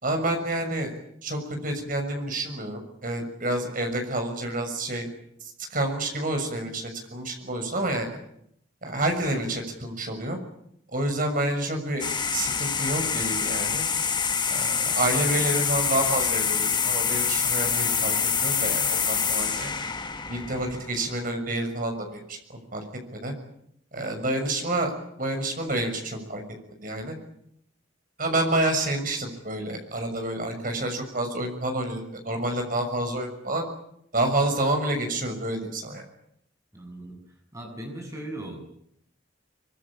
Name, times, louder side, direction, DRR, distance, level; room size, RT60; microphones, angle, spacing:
voice 1, 0.0-5.1 5.4-8.2 8.8-10.4 10.9-12.0 12.3-13.8 14.5-18.1 18.4-19.7 20.3-22.8 23.1-23.3 23.9-24.9 25.2-26.4 26.8-27.1 28.2-33.6 34.1-36.1, right 1 dB, 45° right, 5 dB, 6.7 m, -28 dB
sound 1, 12.0-21.2, left 6 dB, 25° left, 1.4 m, -26 dB
voice 2, 36.7-37.2 37.5-38.6, right 1 dB, 15° right, 3 dB, 7.5 m, -38 dB
24.5 x 23.0 x 8.9 m, 0.73 s
head